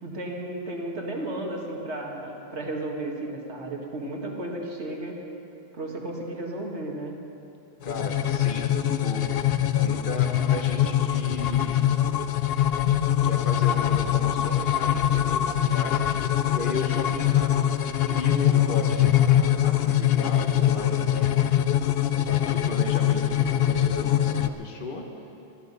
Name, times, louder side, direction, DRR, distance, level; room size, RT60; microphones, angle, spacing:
voice 1, 0.0-5.2 5.7-7.2, right 1 dB, 85° right, -1 dB, 2.4 m, -33 dB
sound 1, 7.8-24.5, left 11 dB, 70° left, 0.8 m, -23 dB
voice 2, 7.8-9.3 9.8-11.8 13.0-16.0 16.5-17.8 18.1-21.3 22.1-25.0, left 2 dB, 50° left, 2 dB, 1.5 m, -35 dB
20.0 x 13.0 x 5.4 m, 2.8 s
omnidirectional pair, 1.1 m